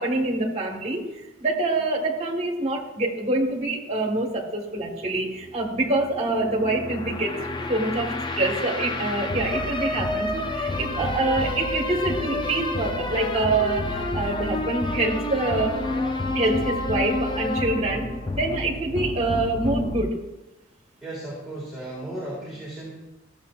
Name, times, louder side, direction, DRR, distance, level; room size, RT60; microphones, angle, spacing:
voice 1, 0.0-7.3 7.7-15.8 16.3-18.1 18.3-20.2, right 2 dB, 30° right, -1 dB, 1.4 m, -25 dB
sound 1, 4.8-20.0, left 2 dB, 25° left, 0.5 m, -29 dB
voice 2, 21.0-22.9, right 1 dB, ahead, -8 dB, 1.9 m, -35 dB
14.0 x 7.0 x 2.4 m, 1.0 s
head